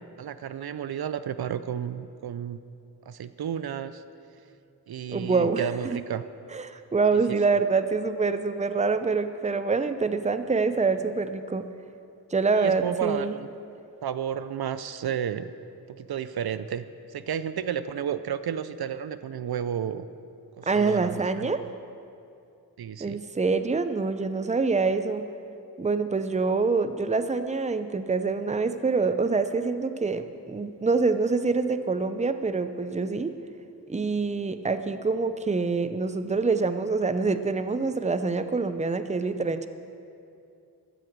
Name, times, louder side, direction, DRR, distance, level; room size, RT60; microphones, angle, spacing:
voice 1, 0.2-2.6 3.1-4.0 4.9-6.2 7.1-7.2 12.5-13.5 14.0-15.5 15.9-16.8 17.1-20.1 20.6-21.5 22.8-23.2, right 8 dB, 70° right, 13 dB, 0.6 m, -32 dB
voice 2, 5.1-6.0 6.5-11.7 12.3-13.3 20.7-21.6 23.0-25.3 25.8-33.4 33.9-39.7, right 4 dB, 20° right, 10 dB, 0.6 m, -26 dB
15.0 x 13.0 x 4.7 m, 2.6 s
wide cardioid pair, 70°, 39 cm